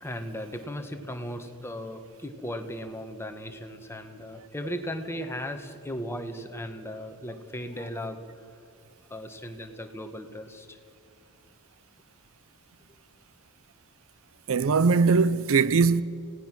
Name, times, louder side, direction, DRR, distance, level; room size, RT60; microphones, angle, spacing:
voice 1, 0.0-8.2 9.1-10.8, equal, 10° left, 1.4 m, -37 dB
voice 2, 14.5-16.0, right 4 dB, 60° right, 0.6 m, -21 dB
29.5 x 17.5 x 6.1 m
head